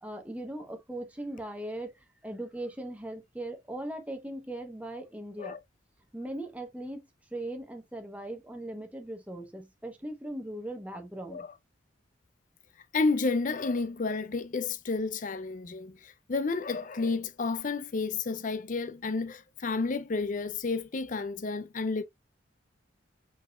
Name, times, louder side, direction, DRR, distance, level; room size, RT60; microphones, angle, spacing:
voice 1, 0.0-5.6 6.1-11.5, right 1 dB, 5° right, 0.9 m, -39 dB
voice 2, 12.9-22.0, left 4 dB, 40° left, 0.5 m, -31 dB
4.8 x 4.6 x 2.3 m
head